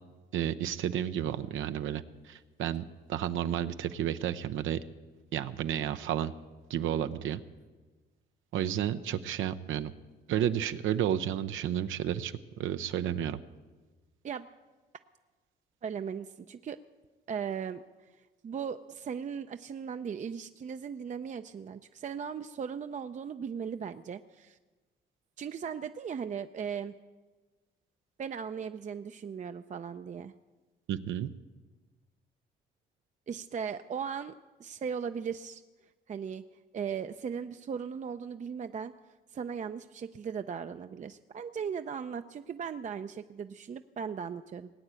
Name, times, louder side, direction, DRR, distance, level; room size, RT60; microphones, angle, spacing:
voice 1, 0.3-4.8 5.3-6.3 6.7-7.4 8.5-9.9 10.3-13.4 30.9-31.3, right 10 dB, 80° right, 10 dB, 0.7 m, -31 dB
voice 2, 15.8-16.8 17.3-17.8 18.4-24.6 25.4-26.9 28.2-30.3 33.3-34.3 34.6-35.6 36.1-36.4 36.7-38.9 39.3-44.7, right 7 dB, 40° right, 9 dB, 0.5 m, -37 dB
19.0 x 8.8 x 8.2 m, 1.3 s
cardioid pair, 90°, 20 cm